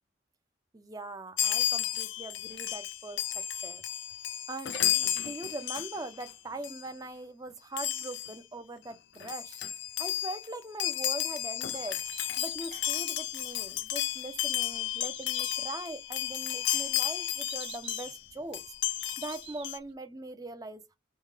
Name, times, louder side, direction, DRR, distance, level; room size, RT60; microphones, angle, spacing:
voice 1, 0.7-3.8 4.5-9.6 10.0-12.0 12.4-18.6 19.2-21.0, right 2 dB, 20° right, 0.6 m, -41 dB
Chime, 1.4-6.3 6.6-6.9 7.8-8.4 8.9-9.0 9.2-18.2 18.5-19.8, left 12 dB, 75° left, 0.4 m, -33 dB
Bird, 12.0-19.9, right 7 dB, 75° right, 1.5 m, -51 dB
5.3 x 2.2 x 3.2 m
head